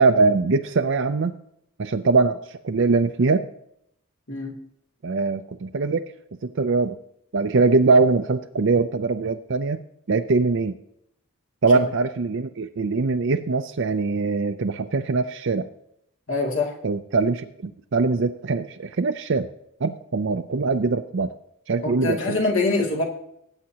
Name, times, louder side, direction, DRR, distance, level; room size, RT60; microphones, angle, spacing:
voice 1, 0.0-1.3 1.8-2.4 2.6-3.5 5.0-6.0 6.4-7.0 7.3-9.8 10.1-10.7 11.6-15.7 16.8-19.5 19.8-21.3 21.7-22.4, right 4 dB, 55° right, 7 dB, 0.5 m, -22 dB
voice 2, 16.3-16.8 21.8-23.0, left 3 dB, 60° left, 0 dB, 2.5 m, -24 dB
20.0 x 8.9 x 2.9 m, 0.73 s
head